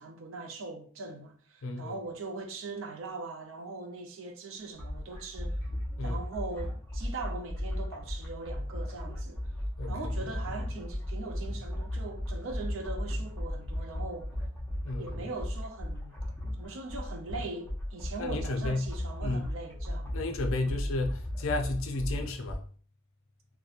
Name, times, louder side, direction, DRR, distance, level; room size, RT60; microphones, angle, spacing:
voice 1, 0.0-5.6 6.0-9.5 9.9-14.3 15.0-16.2 16.6-20.2 20.6-20.8, right 3 dB, 60° right, 0.5 m, -41 dB
voice 2, 1.6-1.9 6.0-6.2 9.8-9.9 14.8-15.1 18.2-18.9 19.2-19.5 20.1-22.6, left 2 dB, 60° left, 0.4 m, -32 dB
sound 1, 4.8-22.5, left 1 dB, 10° left, 0.5 m, -36 dB
2.8 x 2.1 x 2.4 m
head